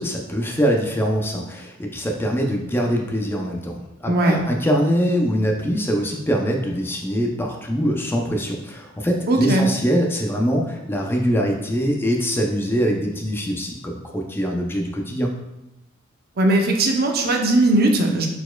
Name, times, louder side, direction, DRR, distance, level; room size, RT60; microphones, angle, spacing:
voice 1, 0.0-15.3, equal, 10° left, 1 dB, 0.4 m, -23 dB
voice 2, 4.1-4.4 9.3-9.6 16.4-18.3, right 2 dB, 50° right, 2 dB, 0.6 m, -18 dB
4.5 x 4.1 x 2.2 m, 0.90 s
head